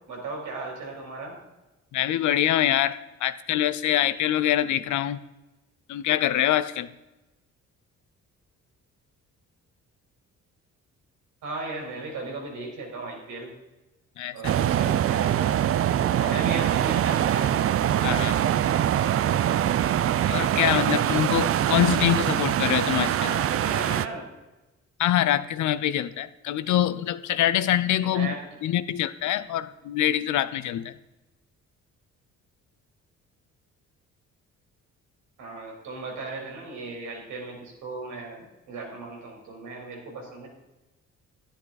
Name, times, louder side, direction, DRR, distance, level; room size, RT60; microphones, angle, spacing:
voice 1, 0.1-1.3 11.4-13.5 14.3-15.6 16.0-17.5 23.2-24.3 28.0-28.4 35.4-40.5, right 3 dB, 85° right, 0 dB, 4.6 m, -36 dB
voice 2, 1.9-5.2 5.9-6.9 14.2-14.3 18.0-18.4 20.3-23.3 25.0-28.3 28.6-30.9, left 12 dB, 75° left, 15 dB, 0.7 m, -24 dB
sound 1, 14.4-24.1, right 11 dB, 50° right, 0.5 m, -23 dB
11.5 x 10.5 x 4.1 m, 1.0 s
cardioid pair, 90°, 30 cm